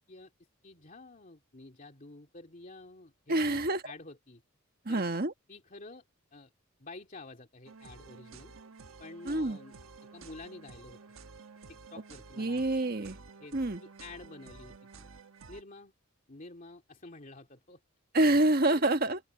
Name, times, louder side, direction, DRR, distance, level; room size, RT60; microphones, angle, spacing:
voice 1, 0.6-4.4 4.9-5.0 5.5-6.0 6.3-6.5 6.8-8.5 9.0-9.8 10.1-11.0 11.7-12.6 13.4-13.6 13.8-15.1 15.5-15.9 16.3-17.8 18.7-18.8, left 2 dB, 40° left, 2.6 m, -49 dB
voice 2, 3.3-3.8 4.8-5.3 9.2-9.6 12.4-13.2 13.5-13.8 18.1-19.2, right 2 dB, 45° right, 1.4 m, -27 dB
sound 1, 7.7-15.6, right 4 dB, 80° right, 1.2 m, -52 dB
open air
head